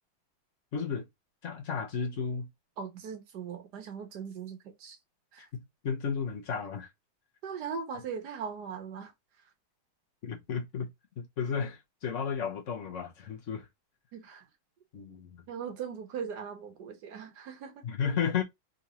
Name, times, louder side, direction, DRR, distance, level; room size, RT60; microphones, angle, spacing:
voice 1, 0.7-1.1 1.4-2.5 5.5-6.9 10.2-10.9 11.2-13.7 14.9-15.4 17.8-18.4, left 6 dB, 50° left, 1.0 m, -33 dB
voice 2, 2.8-5.0 5.3-5.5 7.4-9.1 14.1-14.4 15.5-17.9, right 6 dB, 60° right, 1.4 m, -39 dB
3.9 x 3.4 x 2.9 m
omnidirectional pair, 2.2 m